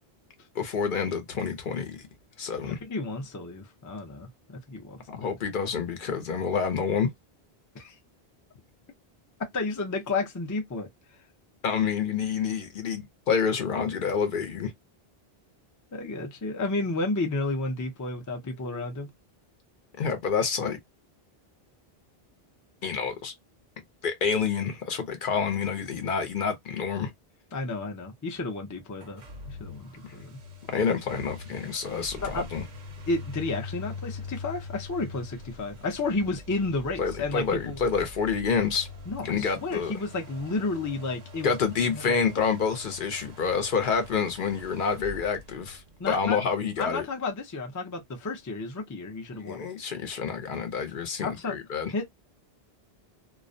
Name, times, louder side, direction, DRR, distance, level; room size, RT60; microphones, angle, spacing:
voice 1, 0.6-2.0 2.4-2.8 5.1-7.1 11.6-14.7 20.0-20.8 22.8-23.3 24.0-27.1 30.0-30.1 30.7-32.6 37.0-38.9 39.2-39.9 41.4-47.1 49.3-51.9, left 6 dB, 60° left, 0.7 m, -28 dB
voice 2, 2.8-5.3 7.7-8.0 9.5-10.9 15.9-19.1 27.5-30.4 32.2-32.4 33.1-37.8 39.1-41.6 41.9-42.2 46.0-46.4 46.8-49.7 51.2-51.6 51.9-52.0, left 3 dB, 25° left, 0.4 m, -32 dB
sound 1, 28.9-46.4, left 3 dB, 55° right, 0.7 m, -43 dB
2.4 x 2.0 x 2.5 m
omnidirectional pair, 1.0 m